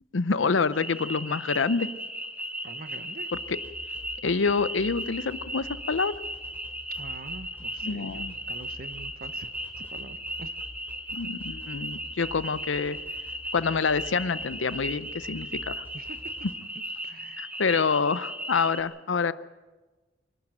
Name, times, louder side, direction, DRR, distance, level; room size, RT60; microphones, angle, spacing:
voice 1, 0.1-1.9 3.5-3.6 4.2-6.1 7.8-8.3 11.1-13.0 13.5-15.8 17.4-19.3, left 5 dB, 85° left, 16 dB, 0.7 m, -27 dB
sound 1, 0.7-18.8, equal, 10° right, 1.6 m, -37 dB
voice 2, 2.6-3.3 7.0-9.5 9.8-10.5 15.9-16.2 16.7-17.5, right 2 dB, 50° right, 12 dB, 1.1 m, -45 dB
sound 2, 3.3-16.5, equal, 10° left, 3.3 m, -48 dB
25.5 x 12.0 x 9.0 m, 1.2 s
head